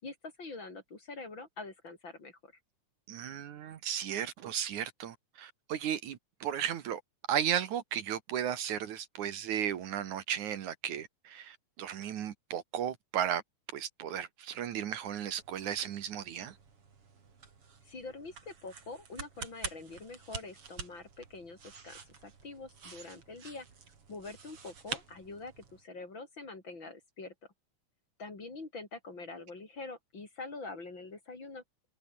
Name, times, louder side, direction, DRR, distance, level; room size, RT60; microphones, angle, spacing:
voice 1, 0.0-2.5 17.8-23.7 24.1-27.3 28.2-31.6, left 3 dB, 35° left, 4.6 m, -45 dB
voice 2, 3.1-7.0 7.3-13.4 13.7-16.6, right 9 dB, 70° right, 2.8 m, -35 dB
sound 1, 15.2-25.8, right 5 dB, 45° right, 3.9 m, -47 dB
omnidirectional pair, 3.7 m